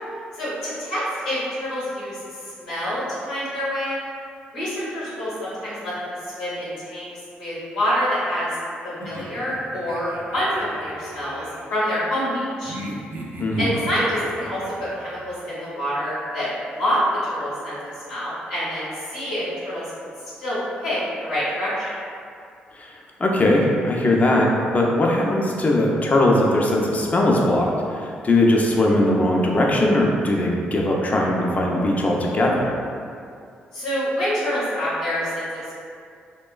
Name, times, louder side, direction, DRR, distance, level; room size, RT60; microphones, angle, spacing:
voice 1, 0.3-4.0 4.5-7.1 7.4-8.6 8.8-12.7 13.6-14.6 15.0-17.0 17.3-17.8 18.0-19.9 20.4-22.0 33.7-35.7, equal, 90° left, -10 dB, 0.9 m, -27 dB
sound 1, 9.0-11.7 12.6-15.2, right 1 dB, 50° right, 0.4 m, -37 dB
voice 2, 22.8-32.7, left 1 dB, 35° left, -2 dB, 0.5 m, -20 dB
2.9 x 2.2 x 2.3 m, 2.3 s
hypercardioid pair, 45°, 4 cm